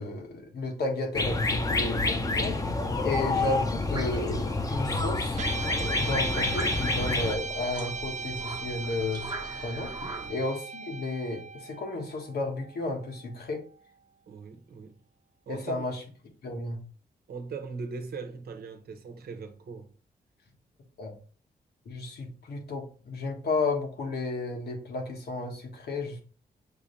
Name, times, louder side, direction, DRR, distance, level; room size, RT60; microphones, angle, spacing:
voice 1, 0.0-2.6 3.0-13.6 15.5-16.0 16.4-16.8 21.0-21.1 21.8-26.2, left 2 dB, 85° left, 1.3 m, -33 dB
sound 1, 1.1-7.4, left 2 dB, 20° left, 0.6 m, -28 dB
sound 2, 3.0-10.3, right 2 dB, 25° right, 0.9 m, -42 dB
Guitar, 5.3-13.8, right 4 dB, 45° right, 0.4 m, -38 dB
voice 2, 10.0-10.5 14.3-15.0 15.5-15.9 17.3-19.9, right 4 dB, 75° right, 0.9 m, -40 dB
6.1 x 2.8 x 3.2 m
wide cardioid pair, 115°, 16 cm